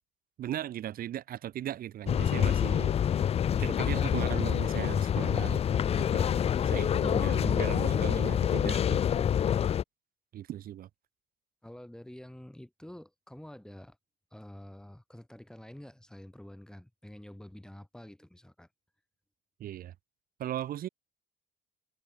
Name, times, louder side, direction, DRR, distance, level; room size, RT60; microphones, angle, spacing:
voice 1, 0.4-3.2 3.5-6.3 6.7-9.4 10.3-10.9 19.6-19.9 20.4-20.9, right 12 dB, 60° right, 1.9 m, -38 dB
sound 1, 2.1-9.8, left 9 dB, 35° left, 0.5 m, -27 dB
voice 2, 11.6-14.0 14.3-18.7, left 1 dB, 5° left, 2.4 m, -48 dB
cardioid pair, 110°, 17 cm